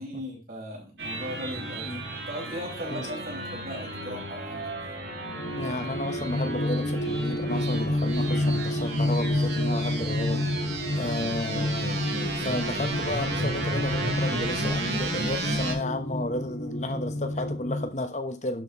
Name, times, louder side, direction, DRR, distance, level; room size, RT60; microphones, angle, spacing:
voice 1, 0.0-4.7, equal, 50° right, 5.3 m, -38 dB
sound 1, 1.0-15.7, right 2 dB, 70° right, 2.9 m, -34 dB
sound 2, 5.1-17.9, left 1 dB, 60° left, 1.5 m, -29 dB
voice 2, 5.6-10.4 10.9-12.1 12.3-18.6, left 2 dB, 40° left, 0.9 m, -33 dB
11.5 x 7.6 x 3.0 m
head